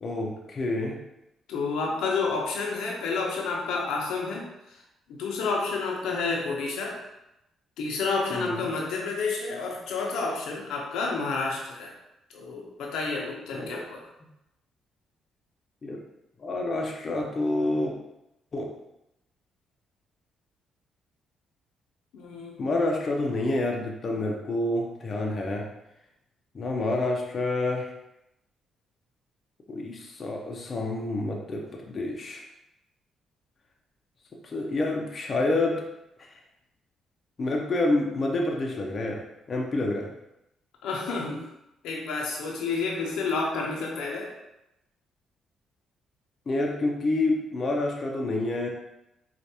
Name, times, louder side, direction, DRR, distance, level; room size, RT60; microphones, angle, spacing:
voice 1, 0.0-1.0 8.3-8.7 13.5-13.8 15.8-16.0 16.4-17.9 18.5-18.7 22.6-25.7 26.5-27.9 29.7-32.4 34.4-35.8 37.4-40.1 46.5-48.7, left 2 dB, 40° left, 0 dB, 0.6 m, -28 dB
voice 2, 1.5-4.8 5.1-7.0 7.8-11.9 12.3-14.0 22.1-22.7 40.8-41.5 41.8-44.3, left 4 dB, 85° left, -1 dB, 0.7 m, -30 dB
4.5 x 2.5 x 2.8 m, 0.87 s
cardioid pair, 90°, 0 cm